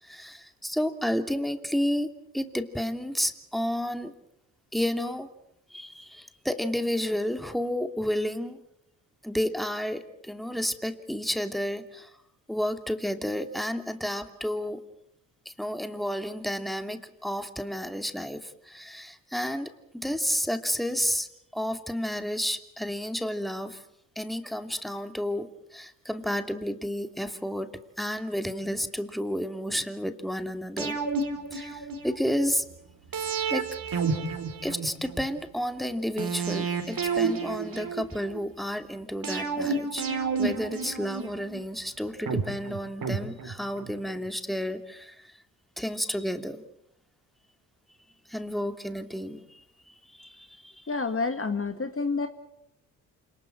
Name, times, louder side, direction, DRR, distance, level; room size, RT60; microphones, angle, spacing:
voice 1, 0.0-4.1 4.7-5.3 5.7-8.6 9.2-12.1 12.5-14.8 15.4-23.8 24.2-27.7 28.0-31.0 31.5-32.6 33.5-33.7 34.6-40.0 40.4-45.3 45.8-46.6 48.3-50.8, equal, ahead, 7 dB, 2.8 m, -31 dB
sound 1, 30.8-32.3 33.1-35.3 36.2-38.4 39.2-41.6 42.3-43.9 44.2-44.3, right 5 dB, 55° right, 4.8 m, -30 dB
voice 2, 50.9-52.3, left 4 dB, 30° left, 7 dB, 1.9 m, -28 dB
28.0 x 20.0 x 7.7 m, 0.78 s
hypercardioid pair, 45°, 42 cm